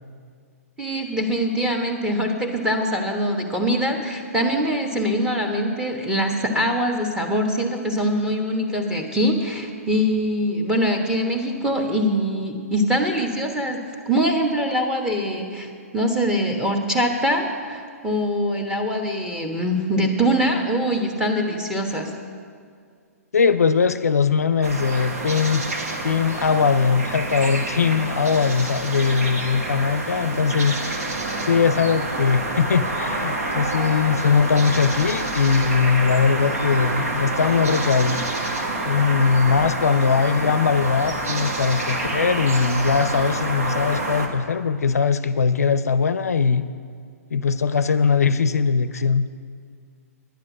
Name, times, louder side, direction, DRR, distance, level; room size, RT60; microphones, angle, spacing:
voice 1, 0.8-13.8 14.1-22.1, equal, 10° right, 2 dB, 1.3 m, -23 dB
voice 2, 23.3-25.7 26.0-30.8 31.4-38.3 38.8-46.7 47.3-49.3, left 5 dB, 75° left, 13 dB, 0.5 m, -20 dB
sound 1, 24.6-44.3, right 2 dB, 65° right, 1.5 m, -27 dB
10.5 x 9.5 x 6.1 m, 2.2 s
figure-of-eight pair, 120°, 8 cm